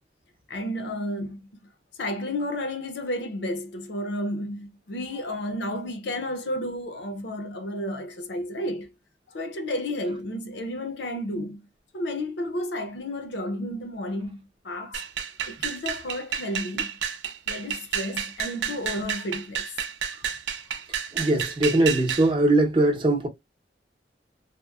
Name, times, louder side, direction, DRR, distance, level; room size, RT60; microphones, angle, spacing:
voice 1, 0.5-1.5 2.0-8.9 9.3-11.7 11.9-15.1 15.5-17.0 17.5-19.7 20.1-20.3, left 1 dB, 70° left, 0.6 m, -32 dB
sound 1, 14.9-22.3, right 8 dB, 80° right, 0.4 m, -31 dB
voice 2, 21.1-23.3, right 2 dB, 30° right, 0.6 m, -21 dB
2.8 x 2.0 x 2.2 m
head